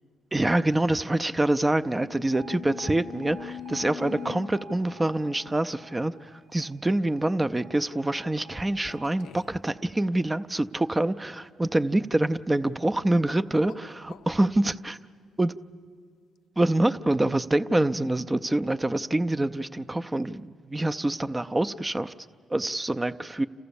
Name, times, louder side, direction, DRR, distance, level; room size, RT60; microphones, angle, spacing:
voice 1, 0.3-15.0 15.4-15.5 16.6-22.1 22.5-23.5, right 1 dB, 15° right, 11 dB, 0.5 m, -26 dB
sound 1, 1.9-5.8 6.7-6.9 8.9-9.7 13.2-14.3, left 9 dB, 75° left, 0.5 m, -44 dB
Alarm, 2.3-10.4, right 2 dB, 50° right, 0.9 m, -50 dB
28.5 x 15.0 x 7.0 m, 2.1 s
cardioid pair, 90°, 0 cm